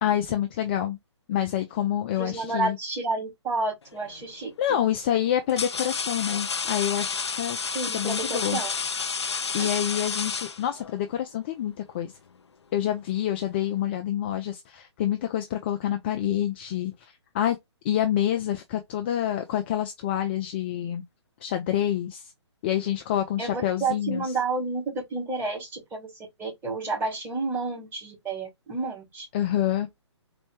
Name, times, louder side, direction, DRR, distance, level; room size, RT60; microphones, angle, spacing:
voice 1, 0.0-1.0 1.3-2.8 4.6-7.6 7.9-8.6 9.5-12.1 12.7-17.6 17.8-21.0 21.4-22.3 22.6-24.3 29.3-29.9, left 11 dB, 20° left, 0.4 m, -27 dB
voice 2, 2.2-4.8 7.7-8.7 9.5-9.7 23.4-29.3, right 3 dB, 15° right, 2.3 m, -30 dB
sound 1, 3.9-4.2 5.0-11.0, left 5 dB, 65° left, 0.6 m, -31 dB
4.1 x 3.1 x 3.1 m
figure-of-eight pair, 135°, 15 cm